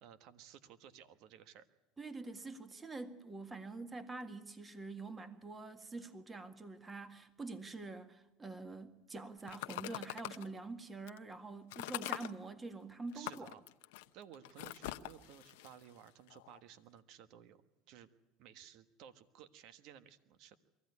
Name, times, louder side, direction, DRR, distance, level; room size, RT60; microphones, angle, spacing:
voice 1, 0.0-1.6 13.1-13.7 14.1-17.6 17.9-18.1 18.4-20.6, right 9 dB, 65° right, 1.4 m, -56 dB
voice 2, 2.0-13.5, right 3 dB, 20° right, 1.8 m, -46 dB
sound 1, 9.5-10.5 11.1-11.2 11.7-12.3 13.1-16.6, left 18 dB, 80° left, 0.8 m, -43 dB
23.5 x 15.5 x 9.6 m
supercardioid pair, 100°, 0 cm